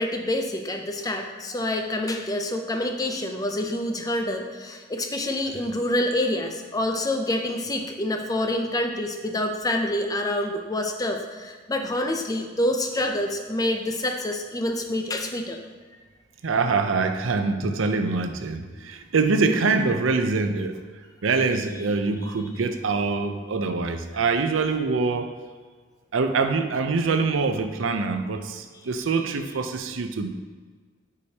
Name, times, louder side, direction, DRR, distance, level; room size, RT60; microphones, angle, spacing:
voice 1, 0.0-15.6, left 1 dB, 20° left, 4 dB, 0.5 m, -27 dB
voice 2, 16.4-20.8 21.2-25.4 26.1-30.3, right 4 dB, 75° right, 7 dB, 0.5 m, -24 dB
8.5 x 4.9 x 2.8 m, 1.5 s
head